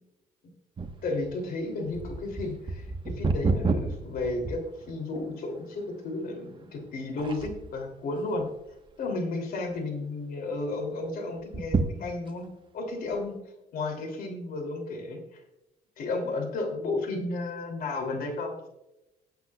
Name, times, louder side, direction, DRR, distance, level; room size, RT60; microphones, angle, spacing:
sound 1, 0.8-5.2 5.8-5.9 6.6-6.9 7.2-7.8 8.4-9.1 9.4-9.5 9.8-9.9 11.4-12.5 13.1-13.2, right 3 dB, 30° right, 1.2 m, -30 dB
voice 1, 1.0-8.5 9.0-12.5 12.7-13.4 13.7-15.2 16.0-18.7, left 2 dB, 60° left, 4 dB, 2.9 m, -33 dB
19.0 x 8.2 x 2.3 m, 0.92 s
cardioid pair, 110°, 17 cm